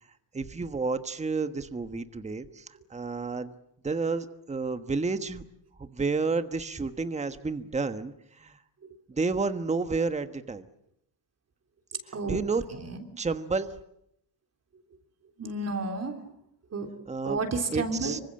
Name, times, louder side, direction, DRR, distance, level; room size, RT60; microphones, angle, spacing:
voice 1, 0.3-3.5 3.8-5.4 5.8-8.6 9.1-10.6 12.1-12.6 13.2-13.7 17.0-17.4 17.7-18.2, right 4 dB, 15° right, 9 dB, 1.4 m, -30 dB
voice 2, 15.4-16.2 16.7-16.9 17.2-18.2, right 3 dB, 35° right, 5 dB, 3.6 m, -31 dB
26.0 x 25.0 x 7.9 m, 0.75 s
cardioid pair, 130°, 42 cm